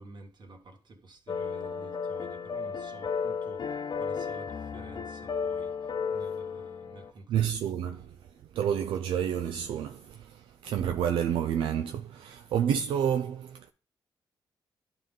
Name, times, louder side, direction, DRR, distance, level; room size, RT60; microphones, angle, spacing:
voice 1, 0.0-7.5, right 2 dB, 60° right, 1.8 m, -50 dB
sound 1, 1.3-7.1, left 6 dB, 60° left, 0.8 m, -34 dB
voice 2, 7.3-8.1 8.5-13.7, right 9 dB, 85° right, 0.5 m, -29 dB
11.0 x 3.8 x 3.6 m
supercardioid pair, 50°, 9 cm